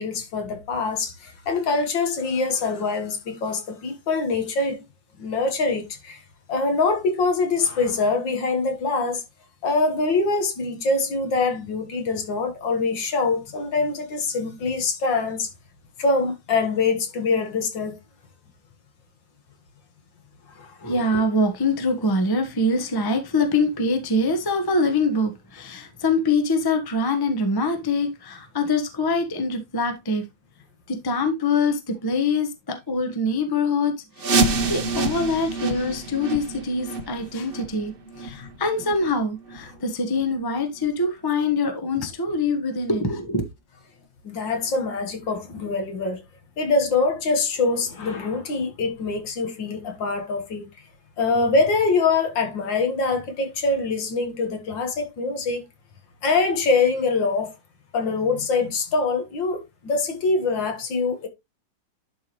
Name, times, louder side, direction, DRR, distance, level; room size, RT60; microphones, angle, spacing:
voice 1, 0.0-4.8 5.2-6.2 6.5-9.2 9.6-15.5 16.0-18.0 20.6-20.9 38.4-38.5 44.2-46.2 46.6-50.7 51.2-55.7 56.2-57.5 57.9-61.3, left 3 dB, 65° left, 2.2 m, -24 dB
voice 2, 20.8-30.2 30.9-34.4 34.7-43.4, left 2 dB, 15° left, 0.8 m, -24 dB
sound 1, 34.2-39.8 40.1-40.2 40.8-40.9 41.5-41.6 42.1-42.2, right 3 dB, 50° right, 0.7 m, -27 dB
11.0 x 4.7 x 3.0 m
omnidirectional pair, 2.2 m